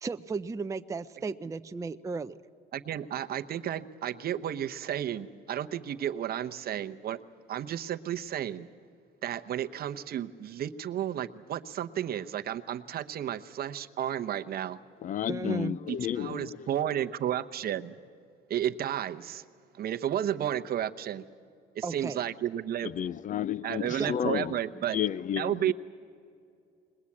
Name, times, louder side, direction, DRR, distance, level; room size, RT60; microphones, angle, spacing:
voice 1, 0.0-2.4 15.3-15.8 21.8-22.2 23.9-24.1, right 4 dB, 15° right, 0.5 m, -34 dB
voice 2, 2.7-7.2 7.5-8.7 9.2-14.8 15.9-17.9 18.5-19.4 19.8-21.2 21.7-22.9 23.6-25.0 25.4-25.7, right 10 dB, 50° right, 0.9 m, -32 dB
voice 3, 15.0-16.7 22.8-24.6 24.9-25.7, left 10 dB, 40° left, 0.5 m, -32 dB
21.5 x 21.0 x 8.5 m
cardioid pair, 110°, 20 cm